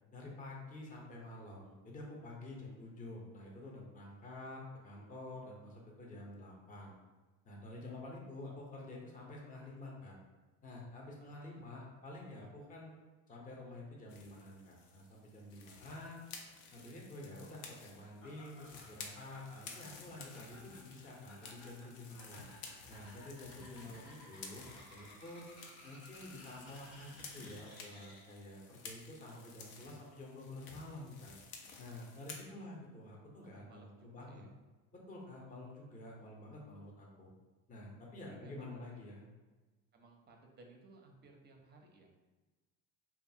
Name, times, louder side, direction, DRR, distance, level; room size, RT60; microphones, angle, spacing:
voice 1, 0.1-6.9 7.4-10.2 10.6-13.0 13.3-16.2 16.7-22.5 22.9-25.5 25.8-31.3 31.8-34.4 34.9-37.3 37.7-39.2, left 2 dB, 20° left, -2 dB, 0.6 m, -49 dB
voice 2, 11.2-11.6 23.7-24.2 24.9-25.4 31.9-32.0 32.2-32.7 33.4-34.5 38.2-39.2 39.9-42.2, right 2 dB, 25° right, 1 dB, 0.5 m, -61 dB
sound 1, 14.1-32.5, left 4 dB, 75° left, 0.6 m, -53 dB
Laughter, 18.2-28.4, left 1 dB, 90° left, 1.2 m, -58 dB
2.6 x 2.4 x 2.6 m, 1.2 s
supercardioid pair, 90°, 38 cm